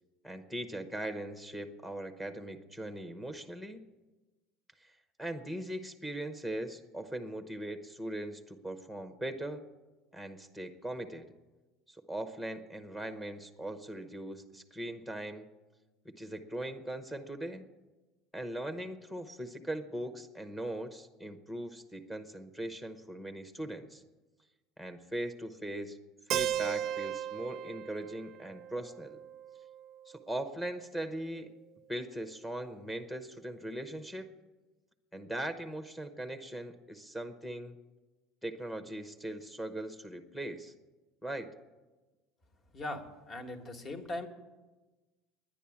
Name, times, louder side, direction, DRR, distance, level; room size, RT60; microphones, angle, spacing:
voice 1, 0.2-3.8 4.8-4.9 5.2-9.6 10.1-11.3 11.9-15.5 16.0-17.6 18.3-24.0 24.8-26.0 26.3-29.2 30.0-31.5 31.9-34.3 35.1-37.8 38.4-40.7 41.2-41.5, right 1 dB, 5° left, 8 dB, 0.9 m, -40 dB
Keyboard (musical), 26.3-30.2, right 11 dB, 55° right, 0.4 m, -37 dB
voice 2, 42.7-44.3, left 2 dB, 40° left, 6 dB, 1.6 m, -39 dB
10.5 x 10.0 x 8.6 m, 1.2 s
supercardioid pair, 105°, 0 cm